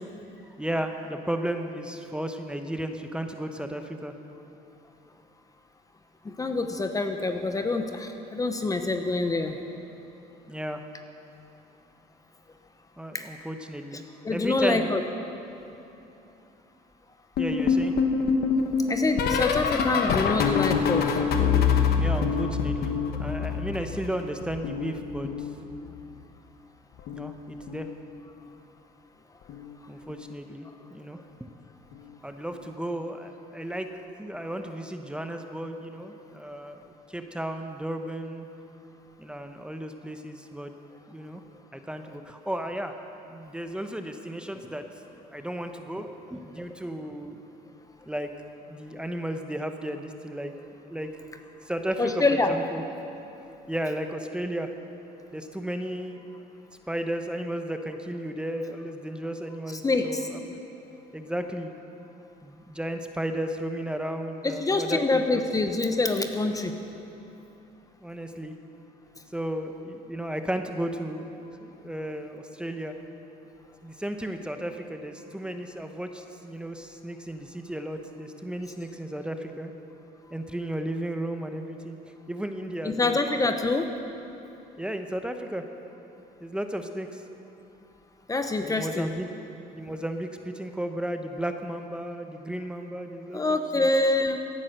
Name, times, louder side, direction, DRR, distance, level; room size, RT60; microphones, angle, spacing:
voice 1, 0.6-4.1 10.5-10.8 13.0-14.0 14.3-15.0 17.4-17.9 22.0-25.5 27.1-27.9 29.9-31.5 32.2-33.9 34.2-38.5 39.2-40.7 41.1-41.4 41.7-43.0 43.3-47.4 48.1-48.3 48.7-50.5 50.9-51.1 51.6-52.8 53.7-54.7 55.3-56.2 56.9-60.4 61.1-61.7 62.4-65.4 68.0-68.5 69.3-71.3 71.6-72.9 73.8-79.7 80.3-82.0 82.3-83.2 84.8-85.6 86.4-87.2 88.6-89.3 89.7-93.9, right 1 dB, 5° right, 6 dB, 0.9 m, -34 dB
voice 2, 6.2-9.6 13.1-13.2 14.2-15.0 18.9-21.2 23.5-23.6 52.0-52.5 59.8-60.3 64.4-66.7 82.8-83.9 88.3-89.1 93.3-94.4, left 3 dB, 20° left, 6 dB, 0.8 m, -26 dB
sound 1, 17.4-24.1 24.4-26.0 27.0-27.3 27.6-27.9 29.5-29.8 30.1-30.3 31.9-32.0, left 6 dB, 70° left, 1.2 m, -25 dB
17.0 x 10.5 x 6.6 m, 2.9 s
cardioid pair, 110°, 17 cm